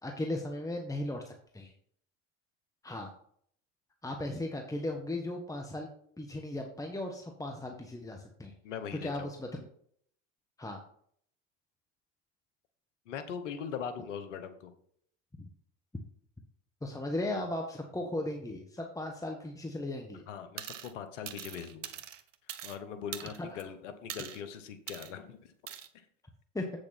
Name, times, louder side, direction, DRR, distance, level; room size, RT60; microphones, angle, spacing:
voice 1, 0.0-1.7 2.8-3.1 4.0-5.9 6.2-8.5 9.0-9.7 10.6-10.8 15.4-15.5 16.8-20.3 23.4-23.6 26.5-26.6, left 1 dB, 10° left, 3 dB, 1.3 m, -37 dB
voice 2, 8.6-9.3 13.1-14.7 20.3-21.9 22.6-25.5 25.9-26.0, left 7 dB, 85° left, 10 dB, 1.1 m, -41 dB
sound 1, 20.6-20.9 21.3-22.8 23.1-23.6 24.1-24.4 24.9-25.1 25.7-25.9, right 10 dB, 90° right, 0.8 m, -42 dB
8.2 x 6.5 x 4.3 m, 0.63 s
hypercardioid pair, 75°, 36 cm